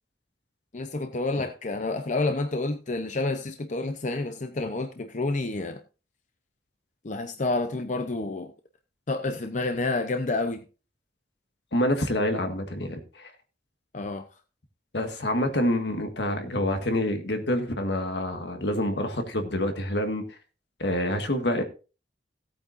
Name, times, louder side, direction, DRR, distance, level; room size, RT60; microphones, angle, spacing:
voice 1, 0.7-5.8 7.0-8.5 9.1-10.6 13.9-14.3, left 2 dB, 45° left, 0.7 m, -29 dB
voice 2, 11.7-13.3 14.9-20.2 20.8-21.6, left 1 dB, 75° left, 1.7 m, -27 dB
17.0 x 8.7 x 2.6 m
head